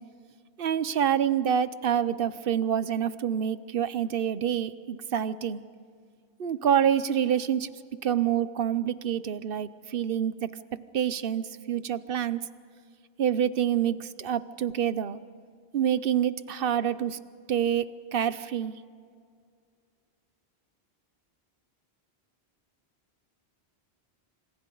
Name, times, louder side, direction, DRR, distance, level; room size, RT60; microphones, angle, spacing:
voice 1, 0.6-5.6 6.4-7.7 8.0-10.5 10.9-12.4 13.2-15.2 15.7-17.2 17.5-18.7, right 9 dB, 65° right, 15 dB, 0.9 m, -27 dB
27.0 x 26.5 x 4.0 m, 2.1 s
omnidirectional pair, 1.1 m